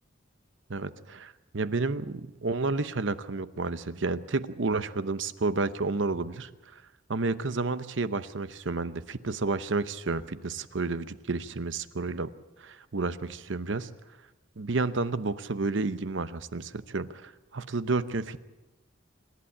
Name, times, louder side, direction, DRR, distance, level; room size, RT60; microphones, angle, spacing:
voice 1, 0.7-6.8 7.1-12.3 12.6-13.9 14.6-18.4, right 3 dB, 70° right, 14 dB, 0.8 m, -31 dB
26.0 x 11.5 x 8.7 m, 1.1 s
head